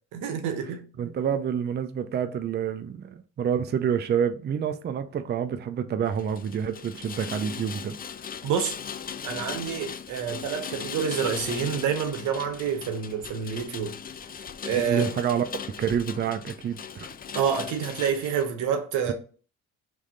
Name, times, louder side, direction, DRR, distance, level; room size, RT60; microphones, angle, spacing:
voice 1, 0.1-0.8 8.4-8.7 9.2-14.0 14.7-15.1 17.3-19.1, right 7 dB, 90° right, 0.9 m, -28 dB
voice 2, 1.0-8.0 14.7-17.1, right 8 dB, 35° right, 0.5 m, -28 dB
Rain, 6.1-18.5, left 7 dB, 30° left, 0.4 m, -38 dB
3.5 x 3.1 x 3.7 m
cardioid pair, 90°, 30 cm